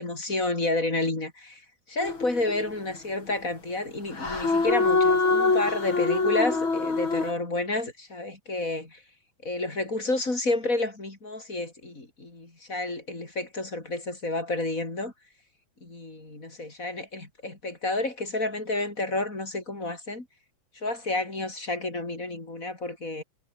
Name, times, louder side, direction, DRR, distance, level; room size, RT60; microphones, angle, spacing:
voice 1, 0.0-1.6 1.9-9.0 9.4-15.1 15.8-20.3 20.8-23.2, left 2 dB, 40° left, 5.3 m, -30 dB
sound 1, 2.0-2.7 4.2-7.3, left 3 dB, 80° left, 5.8 m, -24 dB
omnidirectional pair, 2.2 m